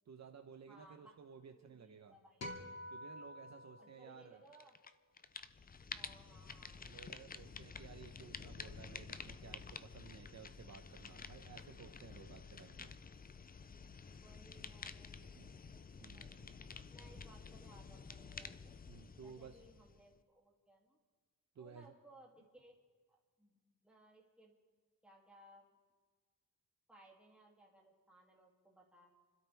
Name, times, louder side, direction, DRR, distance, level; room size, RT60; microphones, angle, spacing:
voice 1, 0.1-2.1 2.9-4.4 6.8-12.9 15.3-15.5 16.0-16.3 18.9-19.6 21.5-21.9, right 6 dB, 50° right, 5 dB, 1.0 m, -56 dB
voice 2, 0.7-1.1 1.5-2.4 3.8-4.8 5.9-6.9 14.2-15.3 15.9-18.8 19.2-21.0 21.6-22.8 23.1-24.6 25.0-25.7 26.9-29.1, right 1 dB, 5° right, -3 dB, 2.8 m, -63 dB
sound 1, 2.4-4.9, left 1 dB, 50° left, 2.5 m, -50 dB
sound 2, 4.5-4.9 5.2-20.2, left 5 dB, 25° left, 0.5 m, -51 dB
29.5 x 12.5 x 3.5 m, 1.4 s
wide cardioid pair, 150°, 34 cm